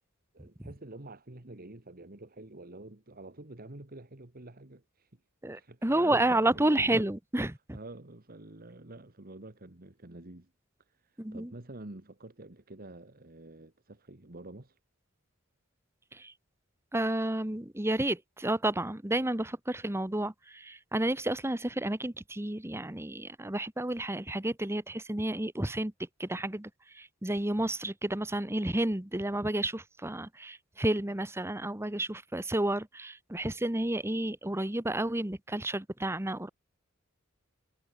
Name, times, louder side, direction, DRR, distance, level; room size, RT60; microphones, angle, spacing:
voice 1, 0.3-5.2 5.5-6.6 7.7-10.5 10.9-14.8, right 2 dB, 45° right, 1.9 m, -48 dB
voice 2, 5.4-7.8 11.2-11.5 16.1-16.3 16.9-25.9 26.2-36.5, right 1 dB, 10° right, 1.2 m, -31 dB
head